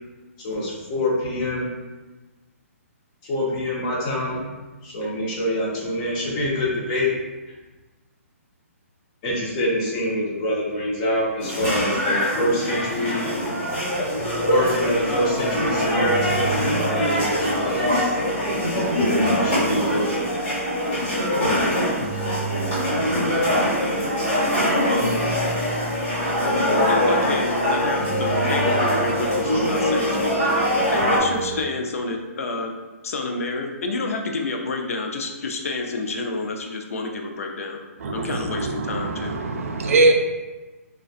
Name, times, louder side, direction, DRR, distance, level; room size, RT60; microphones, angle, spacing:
voice 1, 0.4-1.7 3.2-4.4 4.8-7.1 9.2-13.3 14.4-18.2 19.4-20.3, equal, 25° left, -4 dB, 0.6 m, -25 dB
sound 1, 11.4-31.2, left 1 dB, 50° left, 1.3 m, -23 dB
sound 2, 14.1-31.6, right 3 dB, 5° right, 0.8 m, -32 dB
voice 2, 26.9-30.4 30.9-32.7 33.0-37.8 38.1-39.4, left 3 dB, 70° left, 2 dB, 0.4 m, -29 dB
voice 3, 38.0-40.1, right 2 dB, 65° right, 4 dB, 0.4 m, -22 dB
2.5 x 2.2 x 2.4 m, 1.2 s
hypercardioid pair, 155°, 8 cm